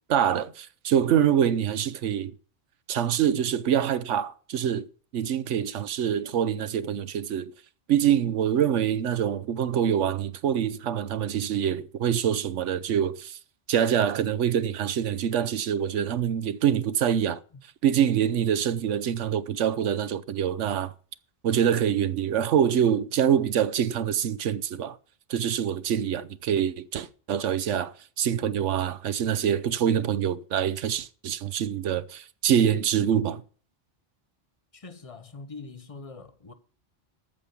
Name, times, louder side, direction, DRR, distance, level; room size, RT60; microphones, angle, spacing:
voice 1, 0.1-2.3 2.9-4.9 5.1-7.5 7.9-13.4 13.7-17.4 17.8-20.9 21.4-25.0 25.3-33.4, right 9 dB, 80° right, 1.1 m, -25 dB
voice 2, 34.7-36.5, left 4 dB, 30° left, 1.2 m, -43 dB
14.0 x 5.4 x 8.2 m
omnidirectional pair, 1.2 m